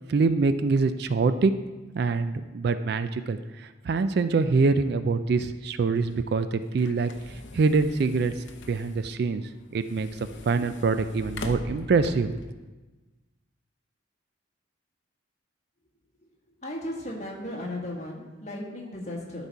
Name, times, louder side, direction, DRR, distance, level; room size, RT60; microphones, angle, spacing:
voice 1, 0.1-1.5 1.9-7.1 7.5-8.3 8.7-9.4 9.7-12.4, right 4 dB, 55° right, 11 dB, 0.3 m, -25 dB
sound 1, 5.9-12.5, left 2 dB, 65° left, 0.7 m, -43 dB
voice 2, 16.6-19.5, left 1 dB, 35° left, -2 dB, 1.5 m, -35 dB
12.0 x 4.1 x 4.6 m, 1.2 s
head